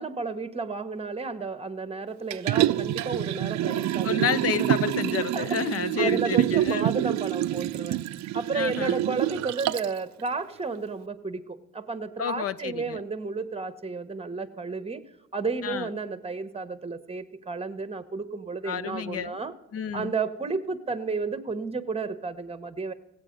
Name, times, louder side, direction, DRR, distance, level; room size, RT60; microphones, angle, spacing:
voice 1, 0.0-4.7 5.2-5.5 6.0-8.0 8.3-15.0 15.3-19.5 19.9-22.9, right 4 dB, 20° right, 1.1 m, -32 dB
Liquid, 2.3-10.0 10.4-10.5, right 14 dB, 65° right, 0.5 m, -27 dB
voice 2, 3.6-6.9 8.5-9.0 12.2-13.0 15.6-15.9 18.6-19.4 19.7-20.1, left 8 dB, 50° left, 0.6 m, -30 dB
16.0 x 8.8 x 5.2 m
cardioid pair, 90°, 30 cm